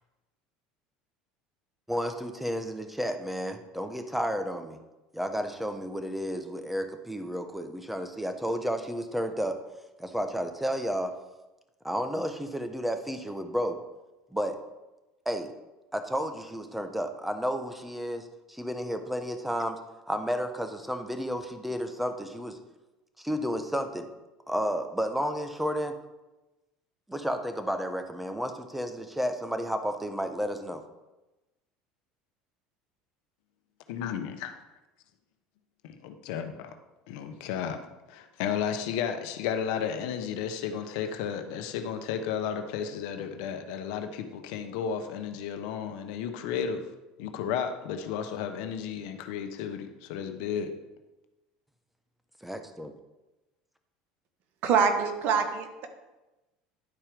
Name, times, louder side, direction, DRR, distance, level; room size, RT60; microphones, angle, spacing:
voice 1, 1.9-4.8 5.1-9.6 10.0-11.1 11.8-13.8 14.3-14.6 15.2-15.5 15.9-19.8 20.1-22.6 23.2-24.1 24.5-26.0 27.1-30.8 52.4-52.9, equal, 5° right, 7 dB, 1.0 m, -32 dB
voice 2, 33.9-34.5 35.8-36.7 37.1-37.8 38.1-46.8 47.2-50.7, left 8 dB, 75° left, 7 dB, 0.9 m, -33 dB
voice 3, 54.6-55.9, right 6 dB, 60° right, 6 dB, 1.2 m, -25 dB
10.5 x 4.4 x 5.1 m, 1.1 s
hypercardioid pair, 85°, 3 cm